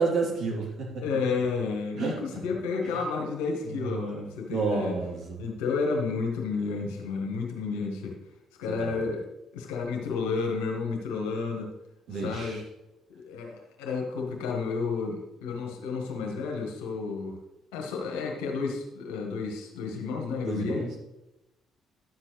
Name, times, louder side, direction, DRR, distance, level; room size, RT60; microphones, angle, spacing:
voice 1, 0.0-0.9 2.0-2.1 3.6-5.4 8.8-9.0 12.1-12.6 20.4-20.9, right 4 dB, 60° right, -5 dB, 3.3 m, -30 dB
voice 2, 1.0-4.9 5.4-8.2 8.6-9.2 9.5-11.7 12.1-12.6 13.1-17.4 17.7-20.9, left 4 dB, 75° left, 1 dB, 1.7 m, -31 dB
11.0 x 7.5 x 3.3 m, 0.95 s
hypercardioid pair, 45°, 0 cm